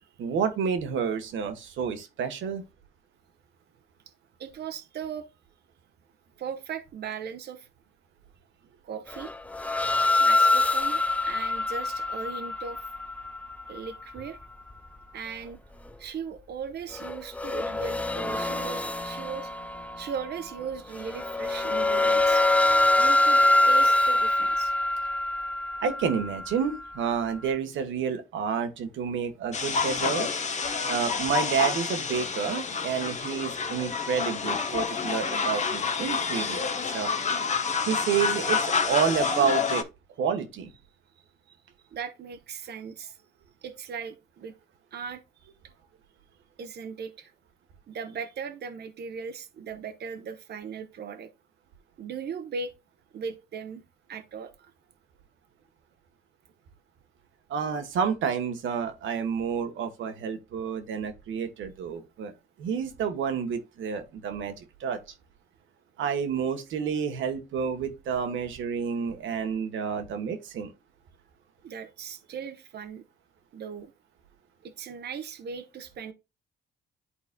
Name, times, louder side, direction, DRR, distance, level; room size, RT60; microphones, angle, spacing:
voice 1, 0.2-2.6 25.8-30.3 30.9-37.1 37.9-39.9 40.2-40.7 57.5-65.0 66.0-70.7, right 7 dB, 75° right, 1.3 m, -29 dB
voice 2, 4.4-5.3 6.4-7.7 8.8-9.3 10.2-12.8 13.7-14.4 15.1-15.6 16.0-19.5 20.0-22.4 23.0-24.7 41.5-41.6 41.9-43.2 43.6-44.5 44.9-45.5 46.6-47.3 47.9-51.3 52.0-52.7 53.1-53.8 54.1-54.7 71.6-73.0 73.5-73.9 74.6-76.1, right 6 dB, 55° right, 0.9 m, -38 dB
sound 1, 9.1-14.4 16.9-20.3 21.0-27.0, left 2 dB, 5° left, 0.3 m, -25 dB
sound 2, 29.5-39.8, left 5 dB, 35° left, 0.9 m, -28 dB
11.5 x 4.0 x 2.2 m
cardioid pair, 90°, 20 cm